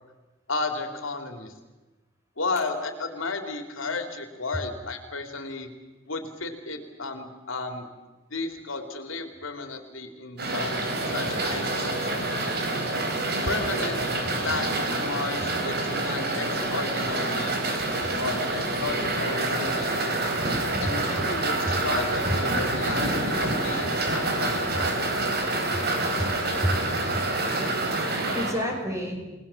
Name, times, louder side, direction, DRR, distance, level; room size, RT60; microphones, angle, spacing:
voice 1, 0.5-1.5 2.4-5.7 6.1-7.9 8.3-12.3 13.5-14.1 14.4-17.5 18.2-20.0 20.8-25.5, left 3 dB, 85° left, 6 dB, 3.2 m, -33 dB
sound 1, 10.4-28.5, right 2 dB, 50° right, 4.2 m, -27 dB
voice 2, 26.1-27.4 27.8-29.2, equal, 15° right, 1 dB, 5.9 m, -31 dB
30.0 x 19.5 x 7.3 m, 1.1 s
head